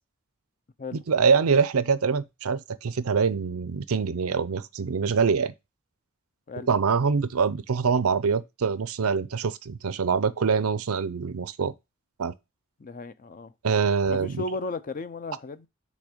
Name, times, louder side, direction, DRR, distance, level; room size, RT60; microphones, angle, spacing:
voice 1, 1.1-5.5 6.7-11.7 12.2-12.3 13.6-14.4, right 5 dB, 80° right, 0.5 m, -24 dB
voice 2, 12.8-13.5 14.1-15.7, left 2 dB, 40° left, 0.5 m, -35 dB
6.2 x 3.3 x 5.0 m
head